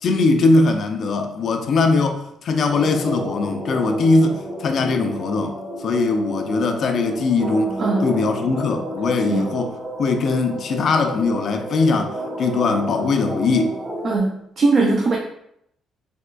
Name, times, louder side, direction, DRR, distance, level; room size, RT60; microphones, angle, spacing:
voice 1, 0.0-5.5 5.8-7.7 8.0-13.8, left 3 dB, 60° left, 0.4 m, -20 dB
sound 1, 2.7-14.2, right 1 dB, 25° right, 1.0 m, -31 dB
voice 2, 14.0-15.2, right 3 dB, 50° right, 0.5 m, -19 dB
3.5 x 2.9 x 2.2 m
cardioid pair, 75°, 0 cm